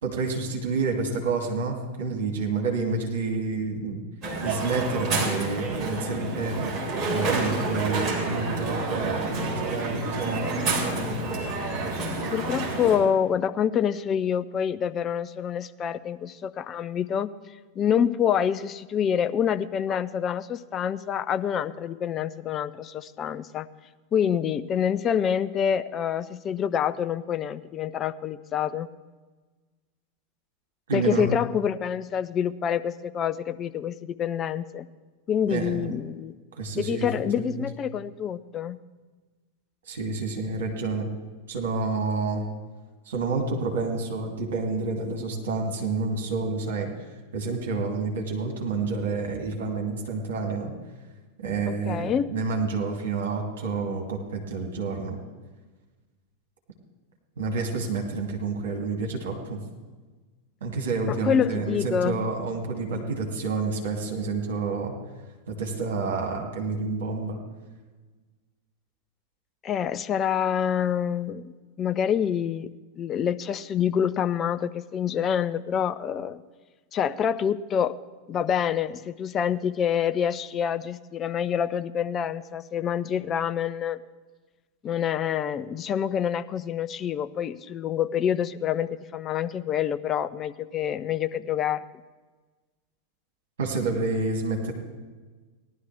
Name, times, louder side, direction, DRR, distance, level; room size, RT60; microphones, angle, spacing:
voice 1, 0.0-4.0 4.4-6.7 7.1-11.1 30.9-31.3 35.5-36.0 36.5-37.1 37.3-37.6 39.9-41.1 41.5-42.5 43.1-46.9 47.3-50.7 51.4-55.2 57.4-59.6 60.6-64.9 65.5-67.4 93.6-94.7, right 4 dB, 60° right, 1 dB, 2.2 m, -29 dB
Crowd, 4.2-13.0, right 3 dB, 25° right, 3.4 m, -29 dB
voice 2, 12.3-17.3 17.8-23.7 24.1-28.9 30.9-34.9 35.3-36.3 36.7-38.8 51.7-52.3 61.1-62.2 69.6-72.7 73.0-76.4 76.9-78.0 78.3-84.0 84.8-91.8, left 8 dB, 30° left, 11 dB, 0.5 m, -27 dB
18.0 x 11.5 x 3.4 m, 1.3 s
figure-of-eight pair, 90°, 0 cm